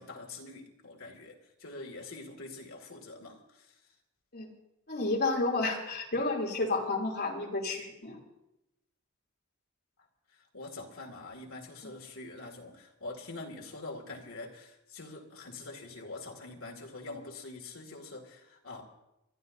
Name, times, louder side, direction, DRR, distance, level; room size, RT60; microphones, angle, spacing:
voice 1, 0.0-3.7 10.5-18.8, left 2 dB, 70° left, 1 dB, 2.3 m, -45 dB
voice 2, 4.9-8.2 11.8-11.9, left 3 dB, 50° left, -2 dB, 3.0 m, -31 dB
29.0 x 12.5 x 2.7 m, 0.92 s
head